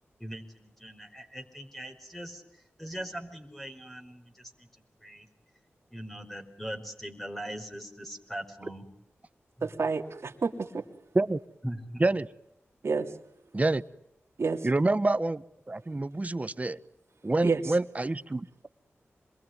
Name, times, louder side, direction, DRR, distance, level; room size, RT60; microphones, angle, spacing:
voice 1, 0.2-4.7 5.0-5.3 5.9-8.9 9.6-9.7 11.6-12.1, equal, 5° left, 3 dB, 5.2 m, -41 dB
voice 2, 9.6-10.8 12.8-13.1 14.4-14.7 17.4-17.6, right 4 dB, 65° right, 2 dB, 3.1 m, -29 dB
voice 3, 14.6-16.8 17.2-18.7, right 2 dB, 30° right, 14 dB, 1.2 m, -27 dB
26.5 x 22.0 x 9.6 m, 0.80 s
cardioid pair, 60°, 5 cm